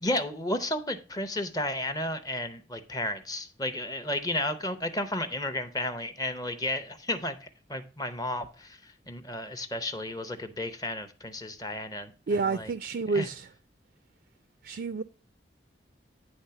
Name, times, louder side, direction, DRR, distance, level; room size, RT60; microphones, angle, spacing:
voice 1, 0.0-12.1 12.5-12.7 13.1-13.3, left 1 dB, 20° left, 0.6 m, -33 dB
voice 2, 12.3-13.5 14.6-15.0, right 4 dB, 55° right, 0.4 m, -29 dB
9.6 x 3.4 x 5.6 m
head